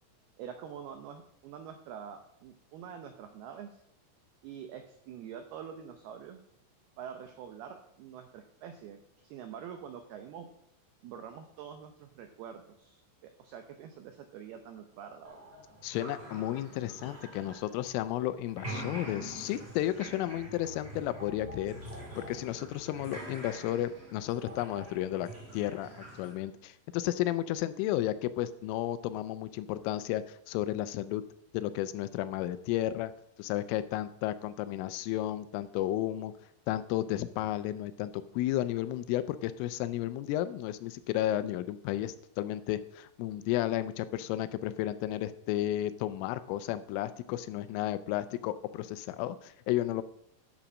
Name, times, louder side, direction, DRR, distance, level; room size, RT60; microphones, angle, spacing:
voice 1, 0.4-3.8 4.4-6.4 7.0-10.5 11.0-15.4, right 8 dB, 85° right, 6 dB, 2.2 m, -46 dB
sound 1, 15.2-18.2 18.5-26.3, right 1 dB, 20° right, 1.6 m, -45 dB
voice 2, 15.8-21.8 22.2-25.3 25.5-31.2 31.5-33.1 33.4-36.3 36.7-50.0, left 13 dB, 85° left, 13 dB, 3.2 m, -33 dB
sound 2, 20.2-24.8, left 2 dB, 20° left, 5.5 m, -51 dB
12.0 x 7.1 x 6.2 m, 0.78 s
omnidirectional pair, 5.7 m